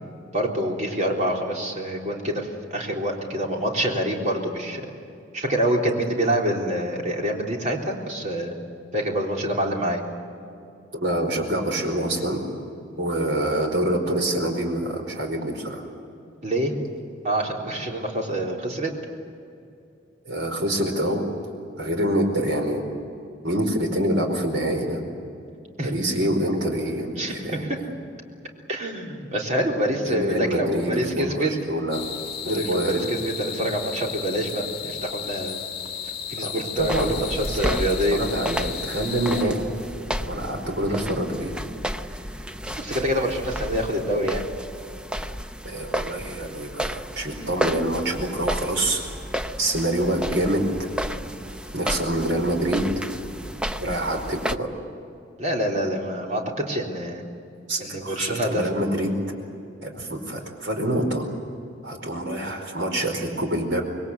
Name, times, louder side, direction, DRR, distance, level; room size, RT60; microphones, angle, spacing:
voice 1, 0.3-4.8 5.3-8.5 8.9-10.0 16.4-16.7 17.2-18.9 25.8-25.9 27.2-27.7 28.7-31.5 32.5-35.6 36.3-38.2 42.7-44.4 55.4-57.2 57.8-58.7, equal, 40° right, 0 dB, 3.7 m, -26 dB
voice 2, 10.9-12.4 13.0-15.9 20.2-21.2 21.8-22.8 23.4-25.0 25.8-27.6 30.0-32.1 32.4-33.1 36.4-37.8 38.1-39.6 40.2-41.5 45.6-49.0 49.6-50.9 51.7-53.1 53.8-54.7 57.7-59.1 59.8-61.2 61.8-63.8, right 1 dB, 70° right, 3 dB, 4.8 m, -26 dB
sound 1, 31.9-39.4, left 8 dB, 30° left, 2.5 m, -34 dB
sound 2, 36.8-54.6, equal, 5° right, 0.7 m, -32 dB
26.5 x 21.5 x 8.2 m, 2.6 s
head